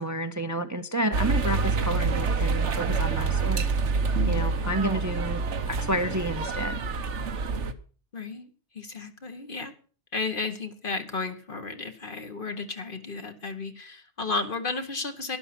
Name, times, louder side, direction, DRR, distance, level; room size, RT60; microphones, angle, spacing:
voice 1, 0.0-3.6 4.3-6.8, right 1 dB, 20° right, 9 dB, 0.6 m, -30 dB
sound 1, 1.1-7.7, right 4 dB, 90° right, 1.3 m, -27 dB
voice 2, 8.1-8.5 8.7-9.7 10.1-15.4, left 4 dB, 50° left, 6 dB, 1.7 m, -33 dB
12.0 x 11.5 x 6.1 m, 0.40 s
omnidirectional pair, 1.2 m